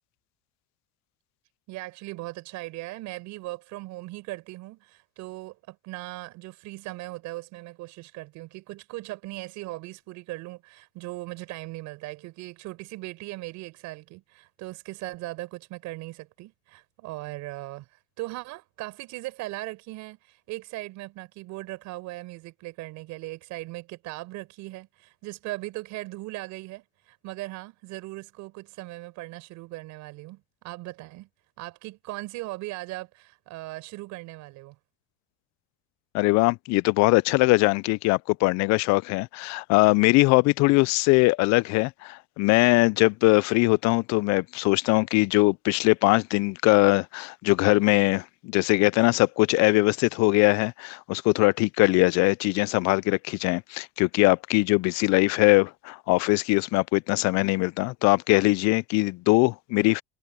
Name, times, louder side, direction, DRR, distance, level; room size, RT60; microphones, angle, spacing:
voice 1, 1.7-31.3 31.6-34.8, right 20 dB, 70° right, 5.3 m, -39 dB
voice 2, 36.1-60.0, left 24 dB, 65° left, 0.5 m, -21 dB
supercardioid pair, 90°, 30 cm